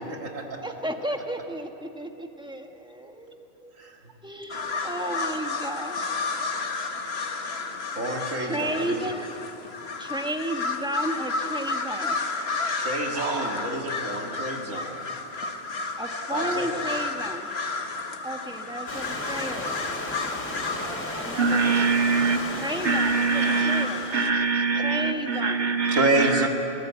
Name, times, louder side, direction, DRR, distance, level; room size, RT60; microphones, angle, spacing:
voice 1, 0.0-0.6 3.8-4.0 8.0-9.2 12.8-14.9 16.3-16.8 23.4-24.2 24.8-24.9 25.9-26.5, right 2 dB, 90° right, 1 dB, 2.5 m, -29 dB
voice 2, 0.6-3.7 4.2-6.0 8.5-9.2 10.0-12.2 16.0-17.5 18.2-19.7 20.8-21.8 22.6-24.3 24.8-25.7, right 1 dB, 5° right, 4 dB, 1.4 m, -33 dB
sound 1, 4.5-24.3, left 3 dB, 55° left, 1.5 m, -32 dB
voice 3, 13.1-13.7 21.4-22.4 22.8-23.9 24.1-26.5, right 4 dB, 65° right, 5 dB, 1.7 m, -24 dB
Stream / Liquid, 18.9-24.2, left 1 dB, 75° left, 3.9 m, -35 dB
26.0 x 18.5 x 8.3 m, 3.0 s
omnidirectional pair, 1.3 m